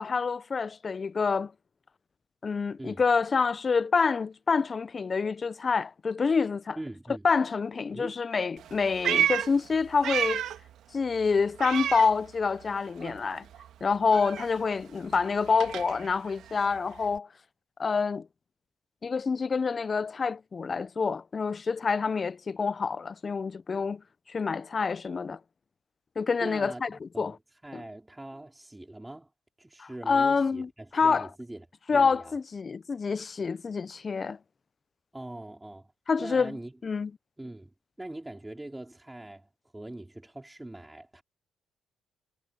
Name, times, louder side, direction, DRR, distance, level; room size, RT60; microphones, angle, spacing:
voice 1, 0.0-1.5 2.4-6.8 7.2-10.4 10.9-13.4 13.8-17.3 17.8-18.3 19.0-24.0 24.3-25.4 26.2-27.4 27.7-27.8 29.8-31.3 31.9-34.4 36.1-36.6 36.8-37.1, left 5 dB, 35° left, 0.5 m, -27 dB
voice 2, 6.8-7.3 7.9-8.2 26.4-29.3 29.6-31.7 31.9-32.4 35.1-35.9 36.2-36.7 37.4-41.2, right 1 dB, 10° right, 4.4 m, -42 dB
Meow, 8.6-10.7 11.0-12.7 13.0-17.2, right 10 dB, 75° right, 2.0 m, -32 dB
cardioid pair, 90°, 0 cm